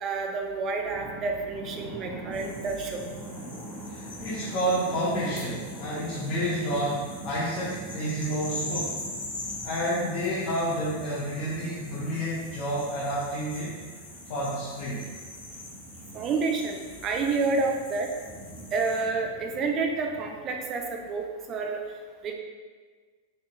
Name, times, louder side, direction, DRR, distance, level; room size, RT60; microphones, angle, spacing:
voice 1, 0.0-3.0 16.1-18.1 18.7-21.8 22.2-22.3, right 4 dB, 30° right, 2 dB, 0.5 m, -29 dB
sound 1, 0.9-20.6, right 1 dB, 5° right, 0.9 m, -43 dB
sound 2, 2.3-19.0, left 2 dB, 70° left, 0.9 m, -43 dB
voice 2, 3.9-9.0 9.6-13.8 14.3-15.0, equal, 40° left, -9 dB, 0.8 m, -30 dB
3.9 x 3.8 x 2.2 m, 1.5 s
figure-of-eight pair, 90°, 0 cm